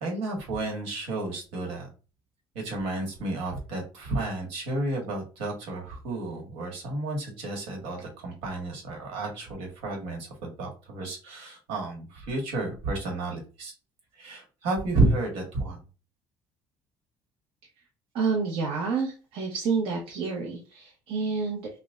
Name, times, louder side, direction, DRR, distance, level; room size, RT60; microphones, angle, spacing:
voice 1, 0.0-1.9 2.5-13.7 14.2-15.8, right 2 dB, 85° right, 1 dB, 1.7 m, -31 dB
voice 2, 18.1-21.7, right 4 dB, 65° right, -2 dB, 1.0 m, -29 dB
5.9 x 2.3 x 2.5 m, 0.33 s
cardioid pair, 150°, 10 cm